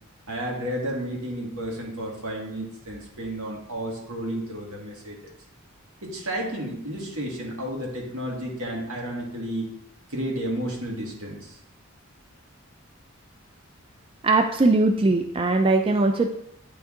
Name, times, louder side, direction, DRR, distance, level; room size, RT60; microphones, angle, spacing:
voice 1, 0.3-5.3 6.0-9.7 10.1-11.6, right 1 dB, 80° right, -2 dB, 1.8 m, -32 dB
voice 2, 14.2-16.3, right 2 dB, 25° right, 5 dB, 0.3 m, -20 dB
9.5 x 3.5 x 3.7 m, 0.77 s
head